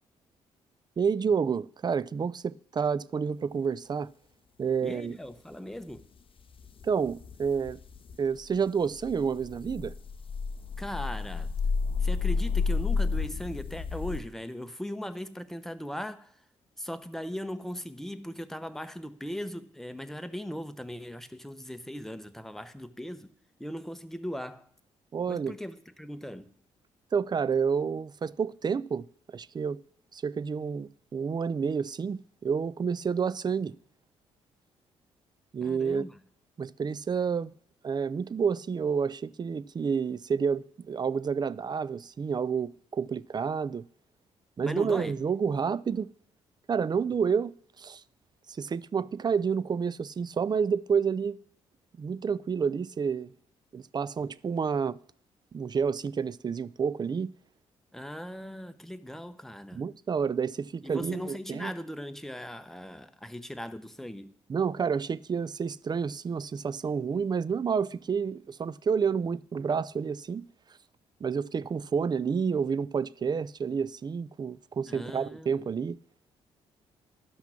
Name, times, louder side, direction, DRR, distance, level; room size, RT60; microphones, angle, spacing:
voice 1, 1.0-4.1 4.6-5.2 6.8-7.8 8.2-9.9 25.1-25.5 27.1-29.1 29.3-29.8 30.1-33.8 35.5-36.1 36.6-37.5 37.8-43.8 44.6-46.1 46.7-48.0 48.5-51.4 52.0-53.3 53.7-55.0 55.5-57.3 59.7-61.7 64.5-70.5 71.2-76.0, right 6 dB, 30° right, 0.4 m, -29 dB
voice 2, 4.8-6.1 10.8-11.5 12.0-16.4 16.8-23.3 23.6-24.7 25.3-26.5 35.6-36.2 44.6-45.1 57.9-59.8 60.8-64.3 74.9-75.6, equal, 5° left, 0.8 m, -39 dB
sound 1, 6.6-8.2 8.6-8.7 9.0-14.2, left 4 dB, 40° left, 0.6 m, -30 dB
12.0 x 5.8 x 5.9 m
hypercardioid pair, 45°, 15 cm